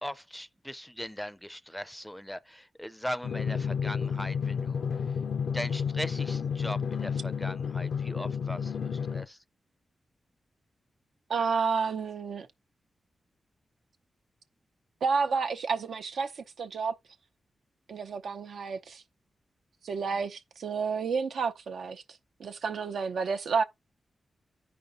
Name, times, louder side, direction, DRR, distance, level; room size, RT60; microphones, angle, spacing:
voice 1, 0.0-5.2 5.5-9.4 20.1-20.2, equal, 5° left, 0.5 m, -39 dB
Drum, 3.2-9.2, left 6 dB, 90° left, 0.6 m, -31 dB
voice 2, 11.3-12.5 15.0-17.0 17.9-19.0 19.8-22.0 22.4-23.6, right 5 dB, 80° right, 0.7 m, -30 dB
14.0 x 5.2 x 2.5 m
cardioid pair, 65°, 0 cm